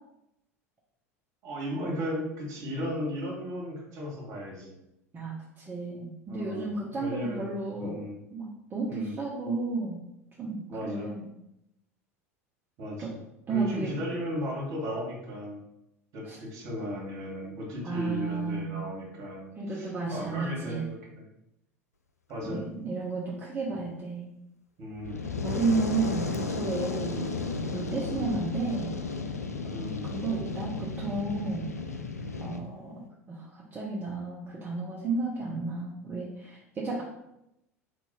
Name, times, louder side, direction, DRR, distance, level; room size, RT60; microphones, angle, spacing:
voice 1, 1.4-4.7 6.3-7.5 7.8-8.2 8.9-9.2 10.7-11.1 12.8-13.2 13.5-15.6 16.1-21.0 22.3-22.6 24.8-25.2 27.1-27.4 28.0-28.3 29.7-30.0, equal, 45° right, -3 dB, 1.6 m, -36 dB
voice 2, 5.1-8.0 8.3-10.0 10.4-11.3 13.0-13.1 13.5-13.9 16.2-16.4 17.8-18.8 19.6-20.8 22.4-24.3 25.4-27.2 27.7-28.9 30.0-31.7 32.4-32.9 33.3-37.0, right 3 dB, 25° right, -5 dB, 0.9 m, -32 dB
Fire, 24.9-32.6, left 3 dB, 85° left, 0.4 m, -34 dB
3.6 x 2.9 x 4.2 m, 0.84 s
figure-of-eight pair, 80°, 8 cm